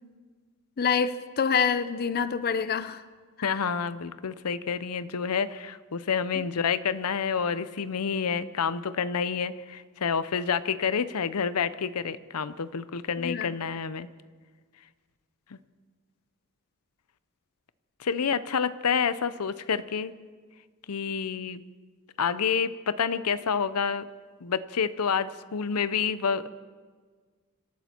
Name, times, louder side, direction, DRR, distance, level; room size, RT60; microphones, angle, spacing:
voice 1, 0.8-3.0 3.5-3.6 13.2-13.5, left 6 dB, 45° left, 14 dB, 0.5 m, -26 dB
voice 2, 3.4-14.1 15.5-15.6 18.0-20.1 20.9-21.6 22.2-24.1 24.4-26.5, left 6 dB, 90° left, 15 dB, 0.6 m, -28 dB
25.5 x 12.5 x 4.4 m, 1.5 s
head